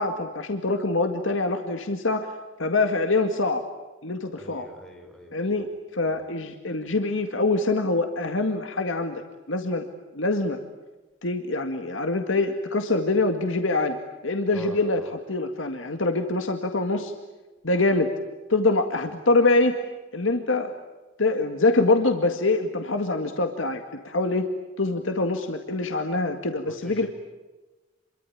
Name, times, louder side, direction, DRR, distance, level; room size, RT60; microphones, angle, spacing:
voice 1, 0.0-2.3 2.6-3.6 4.0-4.7 5.3-5.7 5.9-9.2 9.5-9.8 10.1-10.6 11.2-14.0 14.2-17.1 17.6-18.1 18.5-19.8 20.1-20.7 21.2-24.5 24.8-27.1, left 2 dB, 85° left, 6 dB, 2.0 m, -24 dB
voice 2, 4.4-5.7 6.1-6.3 14.5-15.1 26.7-27.1, equal, 5° left, 2 dB, 4.7 m, -43 dB
28.0 x 23.5 x 8.7 m, 1.2 s
head